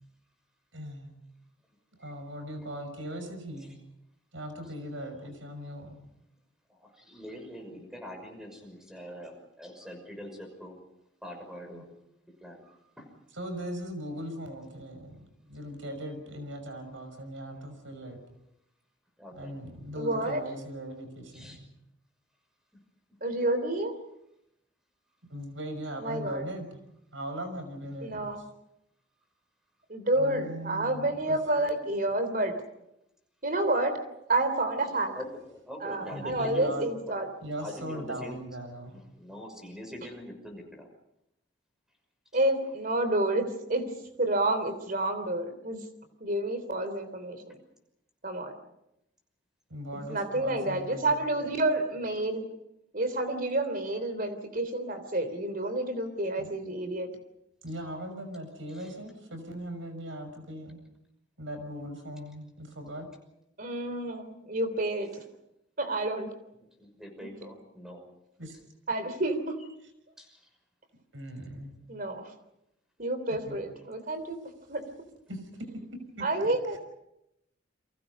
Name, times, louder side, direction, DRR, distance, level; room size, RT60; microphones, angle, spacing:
voice 1, 0.7-1.2 2.0-3.7 4.3-6.0 11.7-11.8 13.4-18.2 19.4-21.7 25.3-26.8 27.1-28.3 30.2-31.4 36.1-36.9 37.4-39.0 49.7-51.1 56.4-56.5 57.6-60.8 61.4-63.1 68.4-68.5 71.1-71.7 73.3-73.5 75.3-75.7 76.2-76.8, equal, 85° right, 8 dB, 6.0 m, -39 dB
voice 2, 1.7-2.1 3.6-3.7 4.6-4.7 6.7-10.8 11.2-11.9 12.4-13.1 19.2-19.5 21.3-21.6 34.9-36.8 37.1-37.2 37.6-38.4 38.9-40.9 58.7-58.9 66.6-68.0 70.2-70.5, equal, 5° right, 4 dB, 5.9 m, -44 dB
voice 3, 20.0-20.4 23.2-24.0 26.0-26.4 28.0-28.4 29.9-32.6 33.4-35.1 35.8-37.3 42.3-43.9 44.2-45.8 46.2-47.6 48.2-48.5 50.1-52.5 52.9-57.1 63.6-65.1 65.8-66.3 68.9-69.6 71.9-72.3 73.0-74.4 74.7-74.9 76.2-76.8, right 2 dB, 45° right, 10 dB, 3.4 m, -29 dB
30.0 x 23.5 x 5.5 m, 0.83 s
head